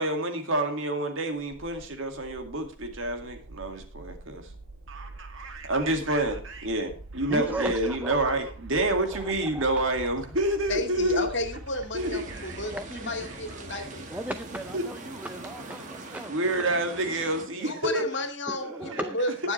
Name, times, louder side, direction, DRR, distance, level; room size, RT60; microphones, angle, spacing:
voice 1, 0.0-4.5 4.9-11.3 11.9-12.6 13.3-13.4 13.7-13.9 14.7-14.8 16.3-18.1 18.6-19.0, right 1 dB, 65° right, 5 dB, 2.2 m, -28 dB
sound 1, 1.5-16.3, right 2 dB, 85° right, 1.5 m, -45 dB
voice 2, 7.3-8.3 8.9-9.6 12.7-13.3 14.1-16.3 16.6-16.7 17.6-17.7 18.5-19.2, right 1 dB, 5° right, 9 dB, 0.5 m, -36 dB
voice 3, 10.7-14.0 17.5-19.5, left 2 dB, 55° left, 6 dB, 2.1 m, -32 dB
sound 2, 12.0-17.5, right 2 dB, 35° right, 1.6 m, -43 dB
20.0 x 7.3 x 3.2 m, 0.38 s
head